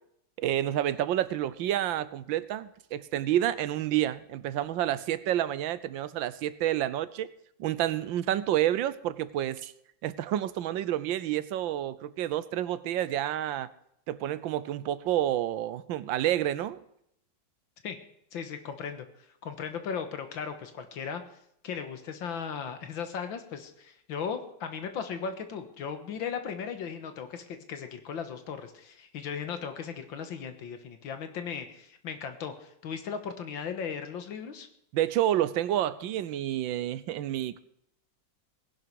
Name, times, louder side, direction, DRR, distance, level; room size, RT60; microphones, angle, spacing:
voice 1, 0.4-7.3 7.6-9.7 10.0-13.7 14.1-16.8 34.9-37.6, right 12 dB, 80° right, 16 dB, 1.4 m, -29 dB
voice 2, 18.3-21.2 21.6-34.7, left 6 dB, 80° left, 8 dB, 2.1 m, -37 dB
18.5 x 11.0 x 4.8 m, 0.74 s
omnidirectional pair, 2.1 m